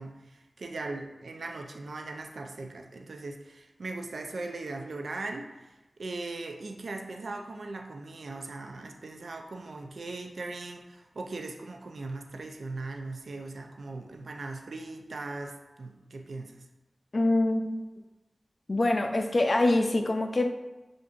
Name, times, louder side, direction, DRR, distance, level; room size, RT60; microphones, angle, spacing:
voice 1, 0.0-5.7 6.0-16.6, right 3 dB, 90° right, 4 dB, 0.4 m, -39 dB
voice 2, 17.1-17.8 18.7-20.5, left 2 dB, 60° left, 5 dB, 0.4 m, -25 dB
7.1 x 2.5 x 2.4 m, 1.1 s
cardioid pair, 45°, 0 cm